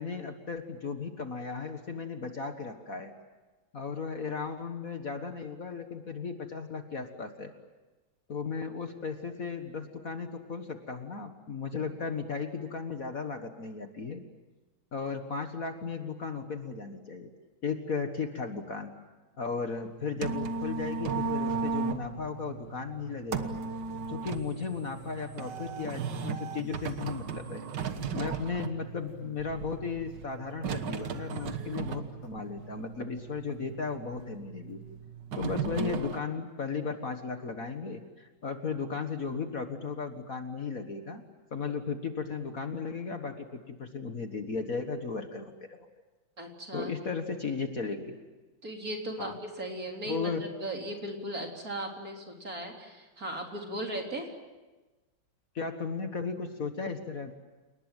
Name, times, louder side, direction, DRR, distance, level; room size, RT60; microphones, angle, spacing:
voice 1, 0.0-3.1 3.7-7.5 8.3-14.2 14.9-17.3 17.6-18.9 19.4-23.5 24.1-27.6 28.1-34.8 35.4-41.2 41.5-45.9 46.7-48.2 49.2-49.4 50.1-50.5 55.6-57.3, left 5 dB, 45° left, 6 dB, 1.8 m, -35 dB
sound 1, 19.8-36.2, right 5 dB, 60° right, 1.9 m, -36 dB
voice 2, 46.4-46.9 48.6-54.3, right 1 dB, 45° right, 1 dB, 4.1 m, -37 dB
30.0 x 19.5 x 9.2 m, 1.2 s
omnidirectional pair, 2.2 m